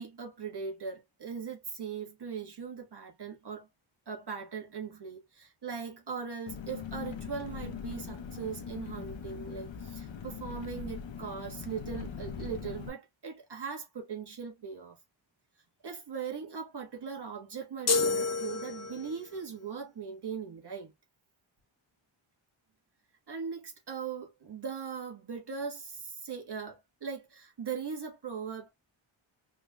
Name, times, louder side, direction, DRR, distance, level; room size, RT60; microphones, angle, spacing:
voice 1, 0.0-3.7 4.1-15.0 15.8-20.9 23.3-28.7, right 6 dB, 55° right, 1.5 m, -40 dB
Engine, 6.5-12.9, left 7 dB, 65° left, 0.8 m, -41 dB
sound 1, 17.9-19.2, left 4 dB, 35° left, 0.7 m, -29 dB
3.6 x 3.5 x 2.2 m
wide cardioid pair, 115°, 48 cm